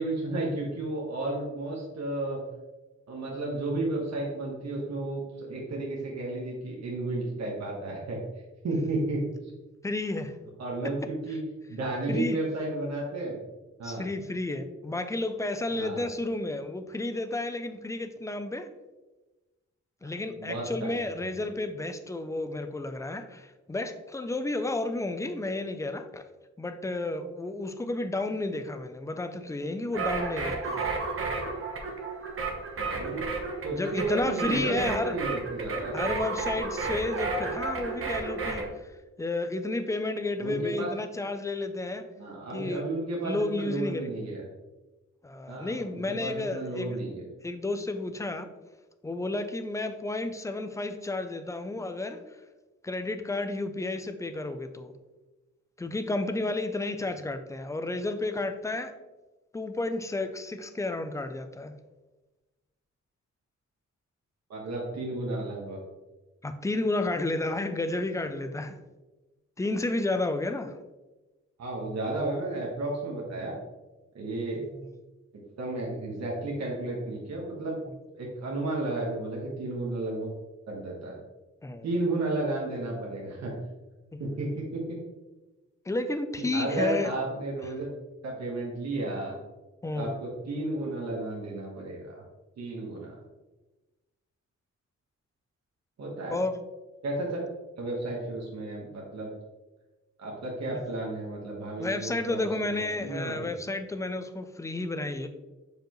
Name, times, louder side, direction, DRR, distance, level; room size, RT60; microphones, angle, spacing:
voice 1, 0.0-2.4 3.1-8.2 8.6-9.2 10.6-11.4 11.7-13.4 13.8-14.1 15.7-16.1 20.0-20.1 20.4-21.2 32.8-33.2 33.6-36.0 40.4-40.9 42.2-44.4 45.5-47.3 64.5-65.8 71.6-73.5 74.1-74.6 75.6-77.8 78.1-80.3 80.7-81.2 81.8-83.5 84.2-85.0 86.5-87.9 88.2-89.3 89.9-92.2 92.6-93.1 96.0-96.4 97.0-97.4 97.8-99.3 100.2-103.5, right 2 dB, 65° right, -3 dB, 1.3 m, -33 dB
voice 2, 9.8-10.4 12.1-12.4 13.8-18.7 20.0-26.3 26.6-30.9 33.7-35.2 35.9-38.9 39.2-42.0 42.5-42.8 43.2-44.1 45.2-47.0 47.4-48.5 49.0-52.2 52.8-54.9 55.8-58.9 59.5-61.7 66.4-68.8 69.6-70.7 74.6-74.9 81.6-81.9 84.1-84.2 85.9-87.1 89.8-90.2 96.3-96.5 101.8-105.3, left 2 dB, 10° left, 9 dB, 0.3 m, -31 dB
sound 1, 29.9-38.7, right 4 dB, 45° right, 1.1 m, -32 dB
6.8 x 5.1 x 3.0 m, 1.1 s
wide cardioid pair, 175°, 29 cm